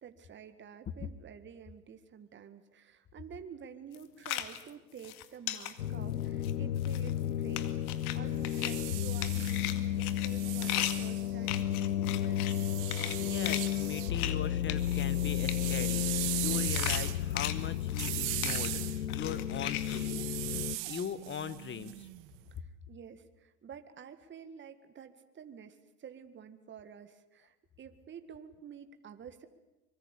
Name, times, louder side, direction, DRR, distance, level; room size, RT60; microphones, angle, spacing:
voice 1, 0.0-12.6 22.6-29.5, right 7 dB, 25° right, 9 dB, 1.8 m, -50 dB
sound 1, 3.9-4.7 5.0-5.7 6.2-6.5 6.8-7.2 7.6-8.2 8.4-8.8 9.1-12.6 12.9-13.2 13.5-14.4 14.6-15.2 15.4-15.8 16.3-16.4 16.7-18.2 18.4-18.8 19.1-20.0, left 13 dB, 65° left, 2.1 m, -37 dB
sound 2, 5.8-20.8, left 11 dB, 85° left, 1.0 m, -33 dB
sound 3, 8.3-11.8 12.5-14.1 14.5-22.4, right 19 dB, 55° right, 2.1 m, -39 dB
voice 2, 13.2-22.1, left 8 dB, 25° left, 16 dB, 1.4 m, -40 dB
24.5 x 22.5 x 8.4 m, 1.0 s
hypercardioid pair, 100°, 47 cm